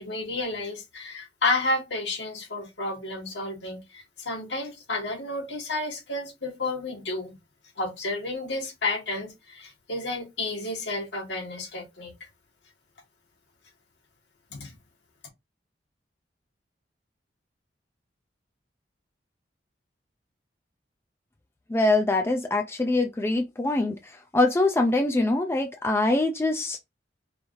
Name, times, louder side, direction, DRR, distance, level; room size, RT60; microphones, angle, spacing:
voice 1, 0.0-7.3 7.8-12.1 14.5-14.7, left 2 dB, 75° left, 1.6 m, -31 dB
voice 2, 21.7-26.9, left 2 dB, 15° left, 0.4 m, -24 dB
4.8 x 2.6 x 3.1 m
head